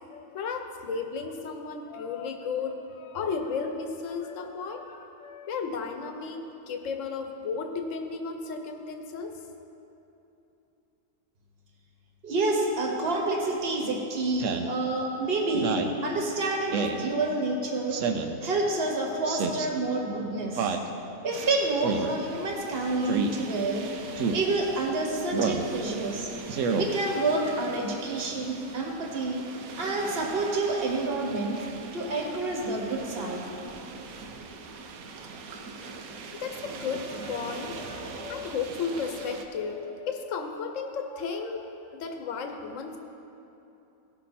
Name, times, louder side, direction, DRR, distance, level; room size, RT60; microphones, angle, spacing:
voice 1, 0.1-9.4 36.3-43.0, left 5 dB, 65° left, 5 dB, 1.2 m, -34 dB
voice 2, 12.2-18.0 18.4-20.7 21.2-23.9 24.3-26.3 26.8-29.4 29.8-31.6 31.9-33.4, right 2 dB, 45° right, 0 dB, 1.5 m, -28 dB
Speech synthesizer, 14.4-14.7 15.5-16.0 16.7-17.0 17.9-18.4 19.3-19.7 20.6-20.9 21.8-22.1 23.1-23.3 24.2-24.4 25.3-25.7 26.5-26.9, right 5 dB, 65° right, 1.0 m, -28 dB
sound 1, 21.3-39.4, right 4 dB, 85° right, 1.2 m, -42 dB
17.5 x 6.0 x 4.2 m, 2.9 s
omnidirectional pair, 1.5 m